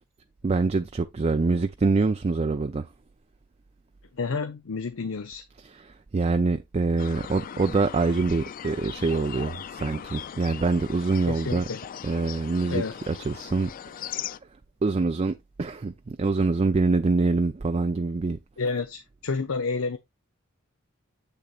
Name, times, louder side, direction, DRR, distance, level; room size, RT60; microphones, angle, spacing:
voice 1, 0.4-2.9 6.1-11.6 12.0-13.7 14.8-18.4, right 3 dB, 30° right, 0.4 m, -25 dB
voice 2, 4.1-5.4 11.3-11.8 12.7-13.0 18.6-20.0, left 4 dB, 85° left, 0.7 m, -30 dB
sound 1, 7.0-14.4, left 9 dB, 45° left, 0.3 m, -39 dB
7.8 x 6.9 x 2.4 m
head